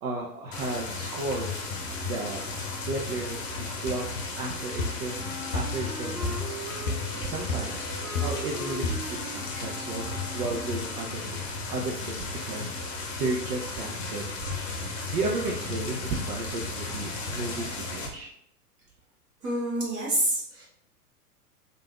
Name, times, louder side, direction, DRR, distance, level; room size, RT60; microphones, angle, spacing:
voice 1, 0.0-2.4 2.9-5.2 5.5-6.6 7.1-10.1 10.3-18.3, right 3 dB, 60° right, -1 dB, 0.6 m, -34 dB
sound 1, 0.5-18.1, left 3 dB, 50° left, 0.8 m, -35 dB
sound 2, 3.9-4.0 4.8-5.1 5.5-5.9 6.2-6.6 6.9-7.2 7.5-8.6 8.8-9.2, left 3 dB, 90° left, 0.5 m, -32 dB
Wind instrument woodwind instrument, 5.0-10.9, right 1 dB, 5° left, 0.9 m, -40 dB
voice 2, 19.4-20.6, right 1 dB, 25° right, -6 dB, 1.3 m, -27 dB
3.2 x 2.5 x 2.2 m, 0.73 s
figure-of-eight pair, 100°, 48 cm